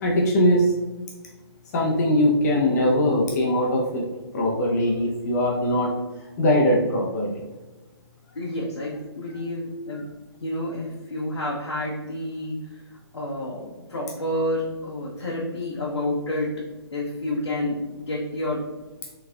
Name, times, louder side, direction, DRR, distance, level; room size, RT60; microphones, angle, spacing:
voice 1, 0.0-0.7 1.7-4.0 4.3-5.9 6.4-7.4, left 1 dB, 40° left, -1 dB, 0.7 m, -21 dB
voice 2, 8.3-10.1 10.4-12.8 13.1-16.5 16.9-18.6, left 1 dB, 85° left, -5 dB, 0.9 m, -29 dB
4.5 x 3.3 x 2.3 m, 1.2 s
figure-of-eight pair, 135°, 14 cm